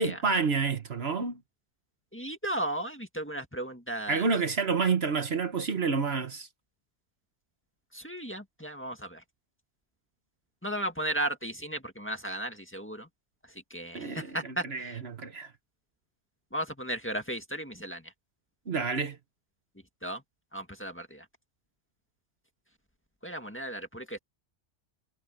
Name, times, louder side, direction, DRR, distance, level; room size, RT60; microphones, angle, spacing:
voice 1, 0.0-1.4 4.1-6.5 13.9-15.5 18.7-19.2, right 4 dB, 55° right, 1.4 m, -29 dB
voice 2, 2.1-4.2 7.9-9.2 10.6-13.1 13.7-15.0 16.5-18.0 20.0-20.2 20.5-21.2 23.2-24.2, right 1 dB, 10° left, 1.9 m, -35 dB
omnidirectional pair, 1.3 m